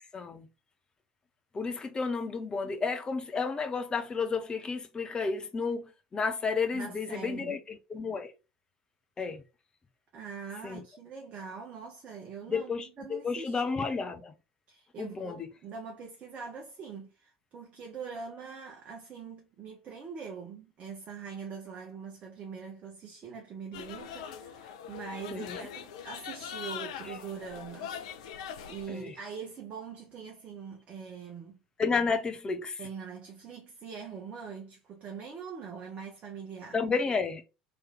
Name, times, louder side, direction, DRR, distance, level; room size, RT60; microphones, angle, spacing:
voice 1, 0.1-0.5 1.5-8.3 9.2-9.4 10.6-10.8 12.5-14.3 15.0-15.5 25.3-25.6 28.9-29.1 31.8-32.8 36.7-37.4, left 4 dB, 20° left, 0.7 m, -32 dB
voice 2, 6.7-7.6 10.1-13.6 14.7-28.0 28.4-31.6 32.8-36.8, right 6 dB, 35° right, 0.8 m, -43 dB
sound 1, 23.7-28.9, left 8 dB, 60° left, 0.4 m, -42 dB
3.1 x 3.0 x 3.5 m
figure-of-eight pair, 70°, 4 cm